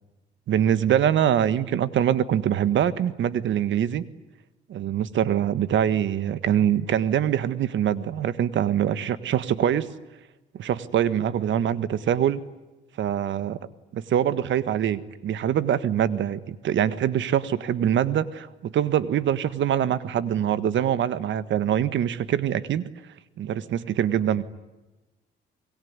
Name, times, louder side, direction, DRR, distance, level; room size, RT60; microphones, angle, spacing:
voice 1, 0.5-4.0 4.7-9.9 10.5-12.4 13.0-13.6 13.9-22.8 23.4-24.4, right 10 dB, 70° right, 14 dB, 1.6 m, -24 dB
25.0 x 22.0 x 9.7 m, 1.1 s
cardioid pair, 90°, 20 cm